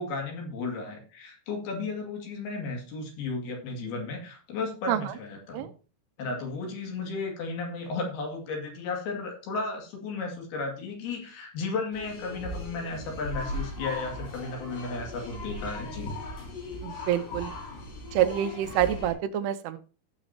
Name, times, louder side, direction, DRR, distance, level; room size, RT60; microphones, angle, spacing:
voice 1, 0.0-5.7 6.2-16.2, left 3 dB, 70° left, 1 dB, 4.1 m, -34 dB
sound 1, 11.9-19.1, left 1 dB, 85° left, 6.1 m, -38 dB
voice 2, 16.8-17.5 18.1-19.8, right 11 dB, 85° right, 10 dB, 2.8 m, -27 dB
17.0 x 6.3 x 2.8 m, 0.36 s
omnidirectional pair, 4.8 m